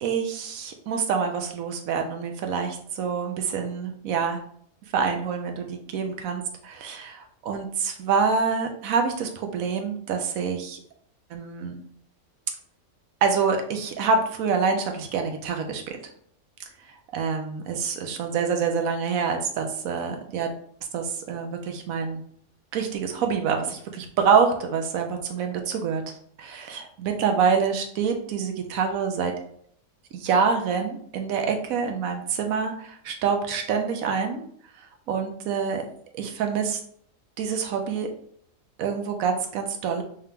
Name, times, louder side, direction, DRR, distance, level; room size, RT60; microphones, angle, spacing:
voice 1, 0.0-4.4 4.9-10.8 11.3-11.8 13.2-16.0 17.1-20.6 20.9-22.2 22.7-29.3 30.1-34.4 34.8-35.8 36.1-36.8 37.4-38.1 38.8-40.0, right 5 dB, 85° right, 4 dB, 1.1 m, -26 dB
3.6 x 2.8 x 3.4 m, 0.63 s
omnidirectional pair, 1.5 m